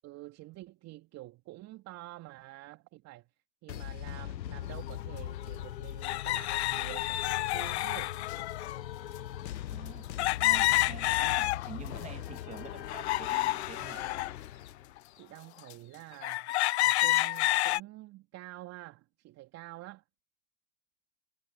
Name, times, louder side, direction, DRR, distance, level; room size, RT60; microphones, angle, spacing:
voice 1, 0.0-3.3 3.6-8.2 15.1-16.5 16.8-20.0, right 17 dB, 30° right, 2.9 m, -48 dB
sound 1, 3.7-15.1, left 12 dB, 90° left, 0.6 m, -41 dB
sound 2, 4.9-5.0 6.0-8.8 10.2-11.9 12.4-14.3 15.0-15.1 15.7-15.8 16.2-17.8, left 17 dB, 45° left, 0.5 m, -29 dB
voice 2, 9.7-10.1 10.4-14.2, right 8 dB, 15° right, 1.4 m, -48 dB
hypercardioid pair, 110°, 49 cm